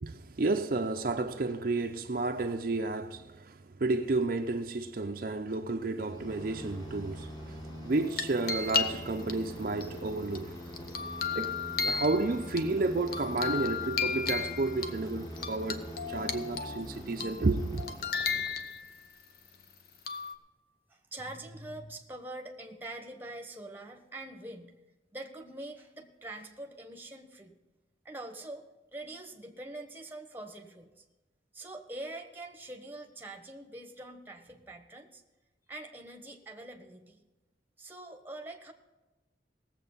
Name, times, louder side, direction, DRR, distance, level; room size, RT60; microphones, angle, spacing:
voice 1, 0.0-10.6 11.3-17.8, right 3 dB, 50° right, 0.6 m, -31 dB
sound 1, 6.1-18.9, equal, 25° left, 1.8 m, -44 dB
sound 2, 7.9-9.3 9.8-12.6 13.1-14.9 15.4-16.8 17.2-17.5 17.8-19.1 20.1-20.3, left 6 dB, 55° left, 0.9 m, -34 dB
voice 2, 20.9-24.7 25.1-27.6 28.0-28.7 28.9-31.0 31.5-35.2 35.7-37.2 37.8-38.7, right 2 dB, 10° right, 1.1 m, -44 dB
18.0 x 7.6 x 5.5 m
head